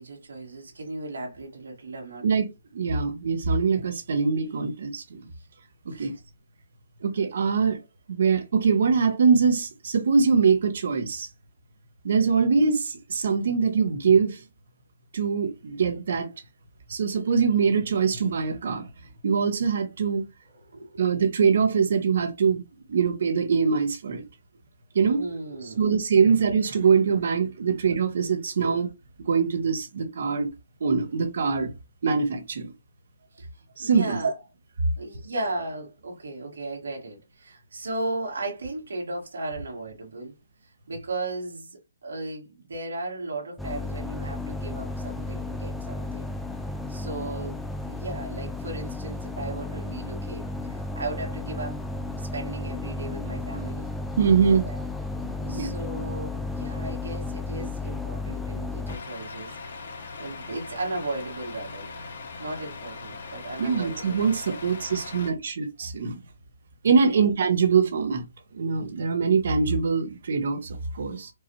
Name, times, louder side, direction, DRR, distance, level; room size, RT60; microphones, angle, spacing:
voice 1, 0.0-2.3 5.9-6.2 20.5-21.0 25.1-26.0 28.6-28.7 33.4-33.5 33.8-34.3 35.0-40.3 40.9-46.3 46.9-51.8 52.1-53.9 54.5-54.8 55.5-59.5 60.2-61.9 62.4-64.2 64.5-64.6 67.0-67.2, right 2 dB, 85° right, 1.9 m, -36 dB
voice 2, 2.7-5.2 5.8-6.1 7.0-7.8 8.1-11.3 12.0-14.4 15.1-16.3 16.9-18.9 19.2-20.2 21.0-22.6 22.9-24.2 24.9-25.2 25.8-28.9 29.2-30.5 30.8-31.7 32.0-32.7 33.8-34.2 54.2-54.6 55.2-55.7 63.6-66.2 66.8-68.2 68.5-71.3, right 5 dB, 60° right, 1.1 m, -23 dB
sound 1, 43.6-59.0, left 2 dB, ahead, 0.4 m, -33 dB
Truck, 58.9-65.3, left 4 dB, 60° left, 1.2 m, -40 dB
4.6 x 2.5 x 2.9 m
hypercardioid pair, 155°, 0 cm